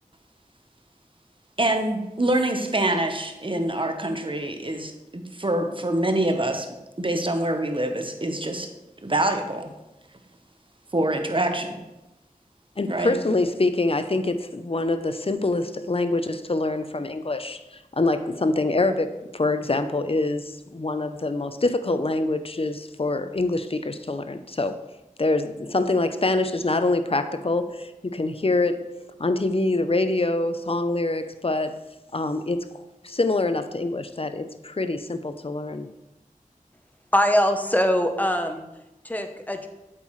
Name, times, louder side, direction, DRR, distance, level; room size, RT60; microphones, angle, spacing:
voice 1, 1.6-6.7 7.0-8.7 9.0-9.7 10.9-11.8 12.8-13.1, right 1 dB, 35° right, 5 dB, 1.0 m, -25 dB
voice 2, 12.8-24.8 25.2-31.8 32.1-35.9, left 2 dB, 40° left, 10 dB, 0.6 m, -25 dB
voice 3, 37.1-38.7 39.0-39.7, equal, 10° left, 6 dB, 0.9 m, -22 dB
8.2 x 7.5 x 3.2 m, 0.98 s
wide cardioid pair, 45°, 14 cm